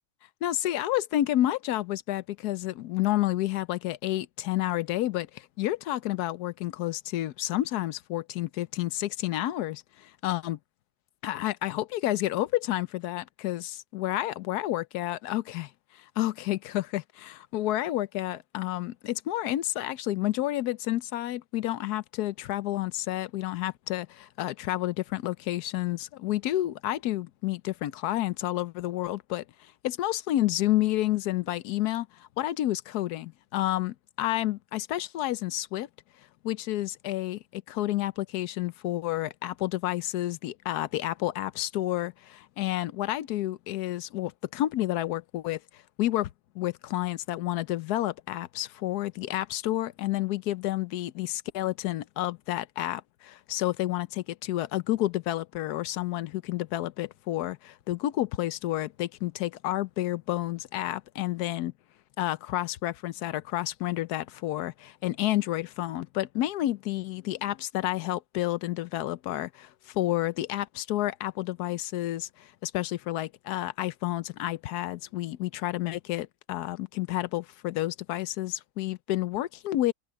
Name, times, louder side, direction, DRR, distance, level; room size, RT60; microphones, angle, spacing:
voice 1, 0.4-10.6 11.2-29.4 29.8-32.1 32.4-35.9 36.4-45.6 46.0-61.7 62.2-79.9, left 15 dB, 80° left, 1.2 m, -30 dB
omnidirectional pair, 1.7 m